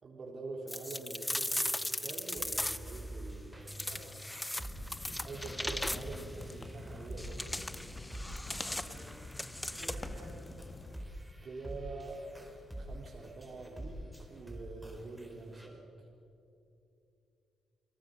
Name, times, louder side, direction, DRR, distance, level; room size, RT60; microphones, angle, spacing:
voice 1, 0.0-4.2 5.2-7.6 11.4-12.2 12.8-14.0 14.3-16.1, right 3 dB, 50° right, -1 dB, 3.7 m, -45 dB
sound 1, 0.7-3.0 3.7-6.3 7.2-10.2, left 1 dB, 10° left, 0.5 m, -38 dB
sound 2, 1.5-15.7, right 1 dB, 5° right, 4.2 m, -47 dB
voice 2, 3.6-4.2 5.0-5.3 8.4-9.2 9.7-10.4, right 1 dB, 85° right, -2 dB, 6.1 m, -53 dB
sound 3, 4.7-11.0, left 2 dB, 30° left, 2.2 m, -47 dB
28.0 x 18.0 x 6.7 m, 2.7 s
hypercardioid pair, 45°, 0 cm